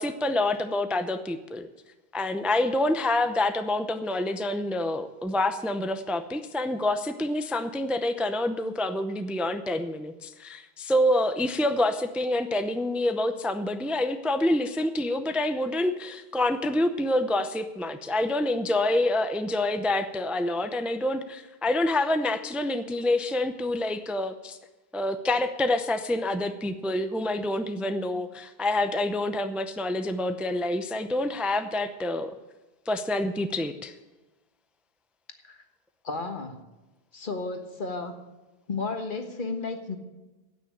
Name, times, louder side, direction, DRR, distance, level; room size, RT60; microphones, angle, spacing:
voice 1, 0.0-1.7 2.1-24.6 24.9-32.4 32.9-33.9, left 1 dB, ahead, 8 dB, 0.6 m, -27 dB
voice 2, 36.0-36.6 37.1-38.2 38.7-40.0, left 3 dB, 55° left, 6 dB, 1.5 m, -33 dB
16.5 x 6.3 x 8.6 m, 1.1 s
omnidirectional pair, 1.0 m